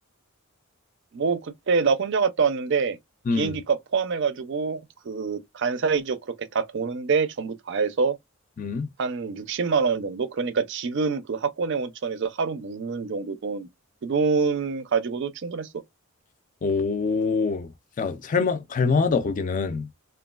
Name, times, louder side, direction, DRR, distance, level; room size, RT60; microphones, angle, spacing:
voice 1, 1.1-3.0 3.3-8.2 9.0-13.7 14.0-15.7, right 5 dB, 55° right, 0.4 m, -26 dB
voice 2, 3.3-3.6 8.6-8.9 16.6-17.7 18.0-19.9, left 4 dB, 35° left, 0.3 m, -24 dB
3.0 x 2.3 x 2.3 m
head